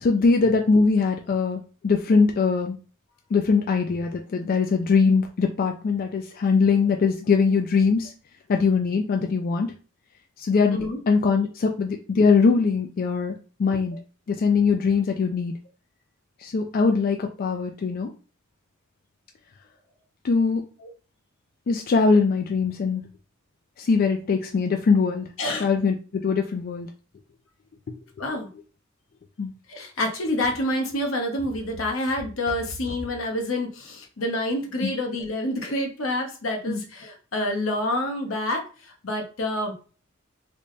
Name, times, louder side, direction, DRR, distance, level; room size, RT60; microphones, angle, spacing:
voice 1, 0.0-2.8 3.3-8.1 8.5-9.7 10.4-13.3 13.6-14.0 14.3-15.5 16.4-18.1 20.2-20.6 21.7-23.0 23.8-25.3 25.6-26.9 29.4-29.5 34.8-34.9 36.7-36.8, left 4 dB, 45° left, 4 dB, 0.3 m, -22 dB
voice 2, 10.7-11.0 20.8-20.9 25.4-25.7 28.2-28.5 29.7-39.7, left 1 dB, 80° left, 3 dB, 0.9 m, -28 dB
3.4 x 2.1 x 3.8 m, 0.37 s
head